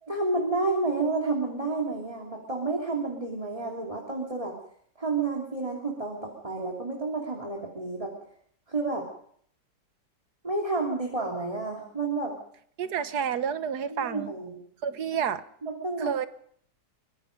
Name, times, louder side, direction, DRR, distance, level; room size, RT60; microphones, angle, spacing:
voice 1, 0.0-4.5 5.0-8.1 8.7-9.1 10.4-12.4 13.9-14.6 15.1-15.2 15.6-16.1, right 3 dB, 20° right, 0 dB, 3.2 m, -30 dB
voice 2, 12.8-14.3 14.8-15.4 16.0-16.3, right 7 dB, 70° right, 12 dB, 1.6 m, -29 dB
24.0 x 22.0 x 5.3 m, 0.64 s
omnidirectional pair, 1.8 m